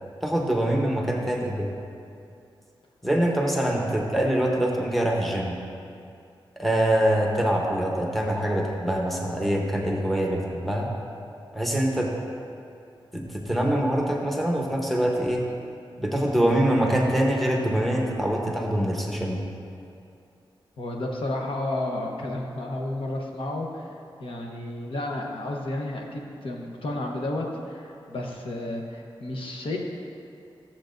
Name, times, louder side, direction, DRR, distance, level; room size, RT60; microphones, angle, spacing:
voice 1, 0.2-1.7 3.0-5.6 6.6-10.9 11.5-12.1 13.1-15.4 16.0-19.4, right 1 dB, ahead, -2 dB, 0.9 m, -24 dB
voice 2, 20.8-23.9 24.2-29.8, left 1 dB, 85° left, 0 dB, 1.0 m, -32 dB
14.0 x 7.4 x 2.6 m, 2.5 s
wide cardioid pair, 170°, 9 cm